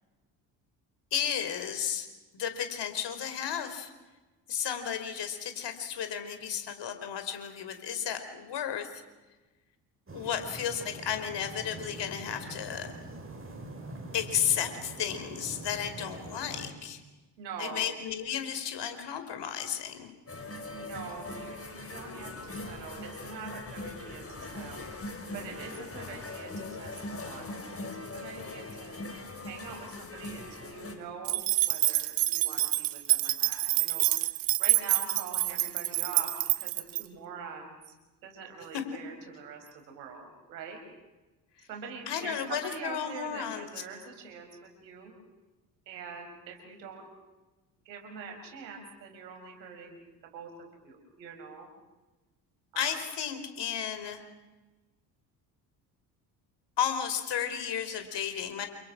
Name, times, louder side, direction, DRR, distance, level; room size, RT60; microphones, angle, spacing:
voice 1, 1.1-2.1 2.3-3.9 4.5-9.0 10.1-12.9 14.1-17.0 17.6-20.1 38.7-38.8 41.6-41.7 42.1-43.7 52.7-54.2 56.8-58.7, left 9 dB, 55° left, 8 dB, 4.9 m, -33 dB
sound 1, 10.1-16.7, right 2 dB, 25° right, 7.7 m, -44 dB
voice 2, 17.4-17.8 20.7-34.3 34.6-37.9 38.2-40.8 41.7-45.1 45.9-47.1 47.8-51.7 52.7-53.0, right 5 dB, 85° right, 4 dB, 5.1 m, -44 dB
sound 2, 20.3-31.0, left 2 dB, 25° left, 6.2 m, -41 dB
sound 3, 31.2-37.0, right 17 dB, 65° right, 1.8 m, -27 dB
29.5 x 28.0 x 6.3 m, 1.2 s
hypercardioid pair, 55°, 50 cm